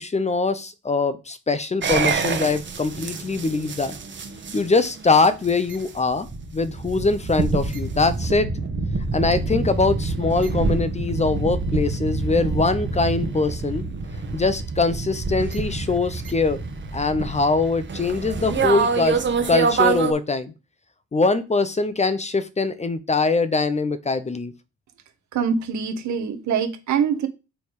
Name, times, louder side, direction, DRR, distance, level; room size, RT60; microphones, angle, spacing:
voice 1, 0.0-4.0 4.5-6.3 6.5-8.5 9.1-13.8 14.3-16.6 16.9-19.2 19.5-20.5 21.1-24.5, left 3 dB, 20° left, 12 dB, 0.7 m, -22 dB
sound 1, 1.8-20.1, right 4 dB, 40° right, 1.3 m, -26 dB
voice 2, 25.3-27.3, right 7 dB, 70° right, 7 dB, 1.3 m, -24 dB
6.9 x 3.5 x 4.7 m, 0.29 s
cardioid pair, 90°, 30 cm